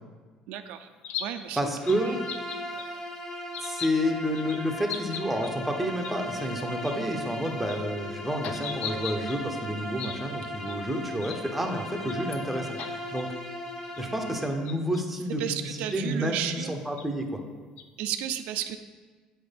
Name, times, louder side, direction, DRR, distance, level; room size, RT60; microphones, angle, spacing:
voice 1, 0.5-0.9 1.2-1.7 2.1-2.2 15.4-16.8 18.0-18.8, right 10 dB, 75° right, 8 dB, 0.4 m, -33 dB
sound 1, 1.0-1.3 1.9-2.0 2.3-2.8 3.5-3.9 4.3-4.6 4.9-5.5 6.0-6.1 6.4-6.5 6.8-6.9 7.4-7.8 8.4-9.4 10.0-10.2 10.7-10.8 11.2-11.4 12.1-12.4 12.8-12.9 13.2-13.3 13.9-14.0 14.7-15.0 15.9-16.0 17.0-17.1 17.8-17.9, left 9 dB, 65° left, 0.5 m, -37 dB
voice 2, 1.5-2.2 3.6-13.3 14.0-17.4, equal, 5° right, 3 dB, 0.7 m, -30 dB
Bowed string instrument, 1.8-14.6, equal, 20° left, 1.2 m, -37 dB
8.0 x 4.3 x 5.1 m, 1.4 s
cardioid pair, 160°, 2 cm